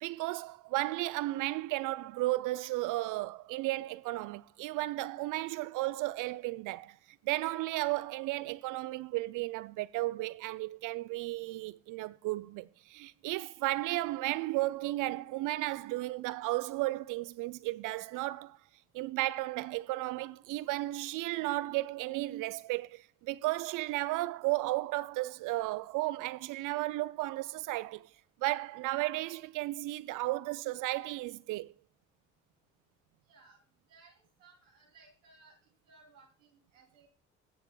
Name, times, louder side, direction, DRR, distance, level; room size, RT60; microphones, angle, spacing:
voice 1, 0.0-7.0 7.3-18.6 18.9-28.1 28.4-31.7, right 18 dB, 55° right, 0.5 m, -34 dB
voice 2, 33.3-33.6 33.9-37.1, right 4 dB, 80° right, 3.3 m, -61 dB
23.0 x 8.0 x 2.3 m
hypercardioid pair, 50°, 38 cm